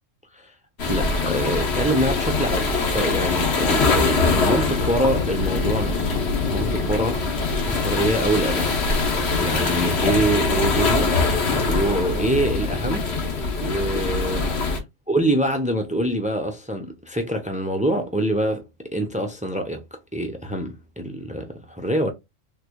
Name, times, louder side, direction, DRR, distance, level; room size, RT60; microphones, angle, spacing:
sound 1, 0.8-14.8, left 3 dB, 60° left, 1.2 m, -23 dB
voice 1, 0.9-6.1 6.5-8.8 9.4-11.1 11.6-13.1 13.6-14.5 15.1-18.6 18.9-19.8 20.1-22.1, right 1 dB, 10° right, 0.4 m, -25 dB
3.7 x 3.2 x 2.2 m
omnidirectional pair, 1.3 m